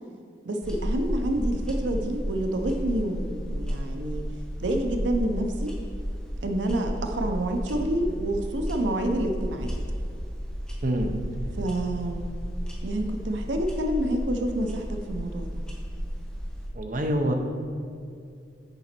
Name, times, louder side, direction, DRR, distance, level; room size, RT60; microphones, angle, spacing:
voice 1, 0.4-4.3 4.6-5.7 6.4-9.7 11.6-12.3 12.8-15.5, right 1 dB, 85° right, 4 dB, 0.6 m, -28 dB
sound 1, 0.6-16.7, equal, 5° left, 1.0 m, -33 dB
voice 2, 10.8-11.2 16.7-17.3, right 1 dB, 50° right, 4 dB, 0.7 m, -26 dB
6.8 x 5.1 x 4.4 m, 2.4 s
head